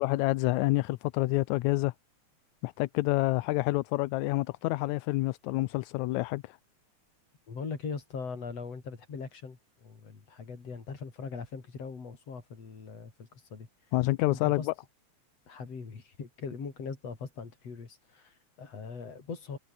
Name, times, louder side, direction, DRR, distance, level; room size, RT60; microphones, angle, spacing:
voice 1, 0.0-1.9 2.6-6.6 13.9-14.6, left 19 dB, 80° left, 2.0 m, -28 dB
voice 2, 7.5-13.7 14.3-14.7 15.5-19.6, left 5 dB, 55° left, 5.0 m, -41 dB
omnidirectional pair, 3.3 m